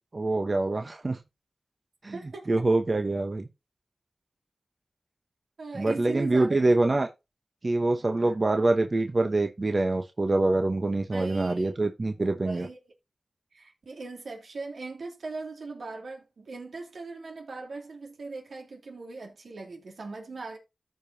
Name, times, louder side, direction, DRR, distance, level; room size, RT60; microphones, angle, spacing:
voice 1, 0.2-1.2 2.0-2.1 2.5-3.5 5.8-7.1 7.6-12.7, right 2 dB, 50° right, 1.0 m, -25 dB
voice 2, 2.1-2.7 5.6-6.6 6.8-6.9 8.2-8.4 11.1-11.7 12.4-12.9 13.5-20.6, right 3 dB, 85° right, 2.6 m, -39 dB
14.0 x 5.0 x 2.8 m
cardioid pair, 45°, 0 cm